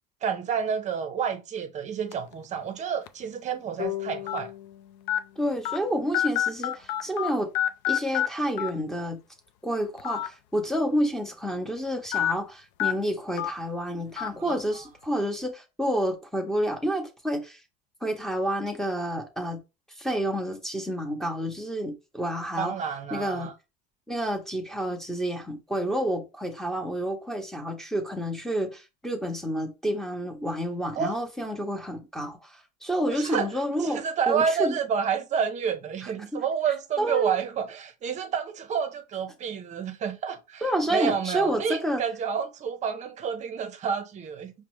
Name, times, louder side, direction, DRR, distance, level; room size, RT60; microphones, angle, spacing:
voice 1, 0.2-4.5 14.4-14.6 22.6-23.5 31.0-31.2 33.1-33.5 33.8-40.6 40.9-44.5, right 7 dB, 35° right, 0.7 m, -29 dB
sound 1, 2.1-2.3 3.1-3.2 4.3-4.4 5.1-5.2 5.6-5.8 6.1-7.3 7.5-8.3 8.6-8.7 10.0-10.3 10.6-10.7 12.1-12.3 12.8-12.9 13.4-13.5 14.2-14.3, left 11 dB, 85° left, 0.4 m, -26 dB
sound 2, 3.8-7.1, left 12 dB, 60° left, 0.9 m, -39 dB
voice 2, 5.4-7.5 7.9-9.2 9.6-17.6 18.0-19.6 20.0-22.7 23.1-23.5 24.1-34.8 36.3-36.4 37.0-37.4 40.6-42.0, equal, ahead, 0.9 m, -29 dB
5.1 x 2.1 x 3.1 m
supercardioid pair, 120°, 21 cm